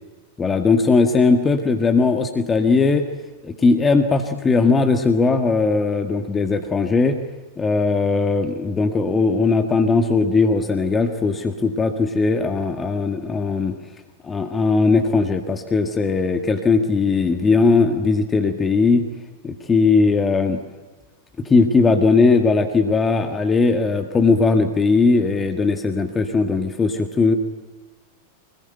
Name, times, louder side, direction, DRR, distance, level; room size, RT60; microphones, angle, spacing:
voice 1, 0.4-3.1 3.4-7.2 7.6-13.8 14.2-19.1 19.4-20.6 21.4-27.4, left 4 dB, 15° left, 5 dB, 1.8 m, -19 dB
25.5 x 21.0 x 9.1 m, 1.3 s
figure-of-eight pair, 90°, 0 cm